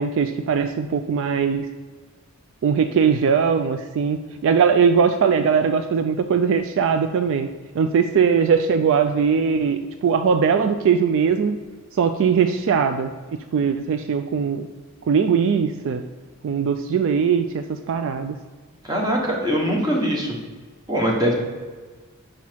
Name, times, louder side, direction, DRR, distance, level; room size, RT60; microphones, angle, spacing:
voice 1, 0.0-1.7 2.6-7.5 7.7-11.6 11.9-13.1 13.5-14.7 15.1-16.0 16.4-18.3, right 6 dB, 60° right, 8 dB, 0.3 m, -20 dB
voice 2, 18.8-20.4 20.9-21.3, equal, 20° right, -1 dB, 1.2 m, -22 dB
5.6 x 5.0 x 4.6 m, 1.4 s
head